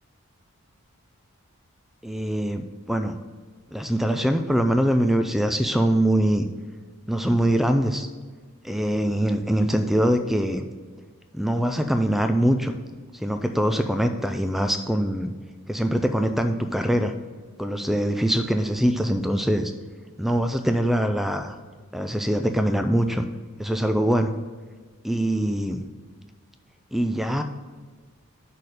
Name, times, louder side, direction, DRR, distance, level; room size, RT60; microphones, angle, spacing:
voice 1, 2.0-3.2 3.7-6.4 7.1-8.1 8.6-10.6 11.3-12.7 13.1-15.3 15.7-17.1 17.6-19.7 20.2-21.6 21.9-23.2 23.6-24.3 25.0-25.8 26.9-27.4, right 1 dB, ahead, 7 dB, 0.3 m, -23 dB
6.4 x 4.1 x 6.5 m, 1.5 s
head